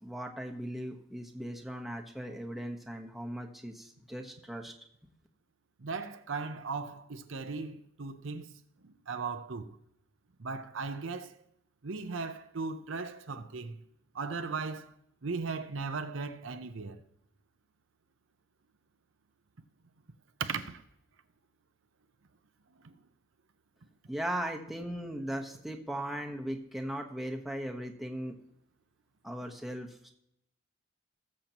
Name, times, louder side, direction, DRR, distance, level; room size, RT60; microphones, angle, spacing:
voice 1, 0.0-4.7 24.1-28.4 29.2-30.1, equal, ahead, 1.1 m, -38 dB
voice 2, 5.8-9.8 10.4-11.4 11.8-13.8 14.1-14.9 15.2-17.0 20.4-20.8 22.8-22.9, right 4 dB, 70° right, 0.7 m, -37 dB
18.5 x 7.6 x 3.0 m
head